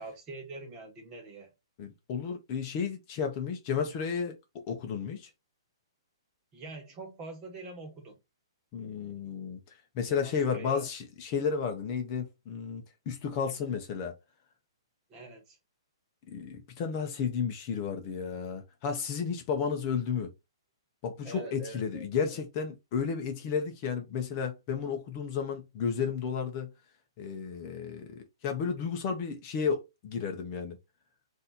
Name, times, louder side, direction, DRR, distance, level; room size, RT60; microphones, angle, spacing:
voice 1, 0.0-1.5 6.5-8.2 10.0-10.9 15.1-15.6 21.2-22.4 23.5-23.6, right 2 dB, 20° right, 1.1 m, -44 dB
voice 2, 1.8-5.3 8.7-9.6 9.9-14.2 16.3-20.3 21.0-26.7 27.2-30.8, left 6 dB, 30° left, 0.7 m, -33 dB
4.1 x 2.7 x 4.1 m
hypercardioid pair, 165°, 3 cm